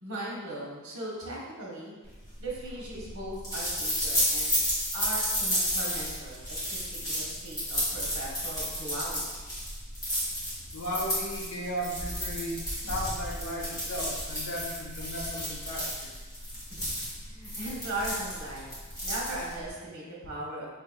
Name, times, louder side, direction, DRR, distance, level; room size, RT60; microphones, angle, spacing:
voice 1, 0.0-2.0 2.4-4.6 4.9-9.2 16.7-18.7 19.0-20.7, right 1 dB, 70° right, -4 dB, 1.0 m, -38 dB
sound 1, 2.2-19.7, equal, 15° left, 1.4 m, -32 dB
voice 2, 10.7-16.1, equal, 80° left, -3 dB, 0.9 m, -35 dB
5.5 x 2.7 x 2.3 m, 1.3 s
head